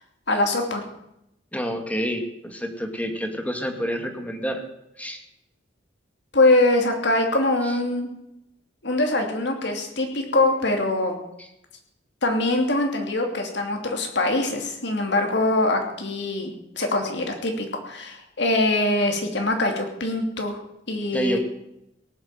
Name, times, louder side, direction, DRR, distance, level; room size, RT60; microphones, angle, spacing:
voice 1, 0.3-0.8 6.3-8.1 8.8-11.2 12.2-20.6 20.9-21.4, left 2 dB, 65° left, 3 dB, 2.9 m, -23 dB
voice 2, 1.5-4.6 5.0-5.2 7.6-7.8 11.4-11.5 21.1-21.4, equal, 10° left, 4 dB, 1.8 m, -28 dB
18.0 x 7.9 x 7.8 m, 0.83 s
head